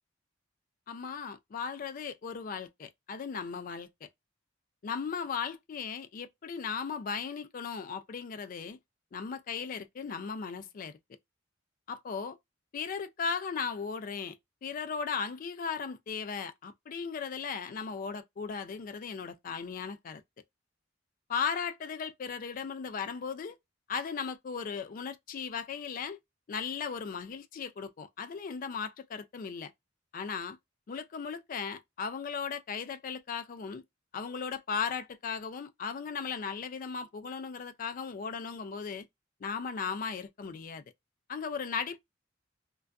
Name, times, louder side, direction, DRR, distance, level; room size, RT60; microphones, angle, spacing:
voice 1, 0.9-4.1 4.8-8.8 9.1-10.9 11.9-12.4 12.7-14.4 14.6-20.2 21.3-23.6 23.9-26.2 26.5-29.7 30.1-30.6 30.9-33.8 34.1-39.1 39.4-40.8 41.3-42.0, left 6 dB, 45° left, 0.3 m, -37 dB
2.5 x 2.2 x 2.2 m
head